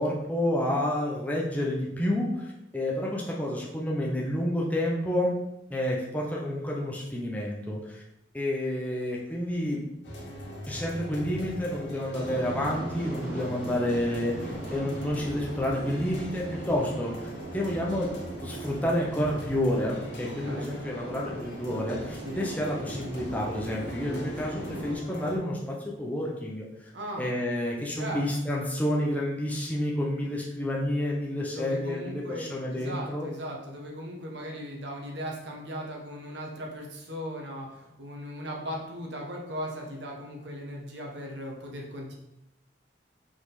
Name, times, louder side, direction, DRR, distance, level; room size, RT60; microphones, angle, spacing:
voice 1, 0.0-5.3 5.7-8.0 8.3-9.8 10.7-18.1 18.4-26.9 27.2-33.3, left 1 dB, 10° left, -3 dB, 0.9 m, -29 dB
sound 1, 10.0-25.3, equal, 80° left, 1.9 m, -42 dB
sound 2, 12.1-24.9, right 1 dB, 10° right, 2.4 m, -39 dB
voice 2, 20.4-20.7 22.2-22.4 26.9-27.4 28.0-28.3 31.5-42.1, equal, 70° right, -1 dB, 1.5 m, -38 dB
6.0 x 5.0 x 4.1 m, 0.88 s
head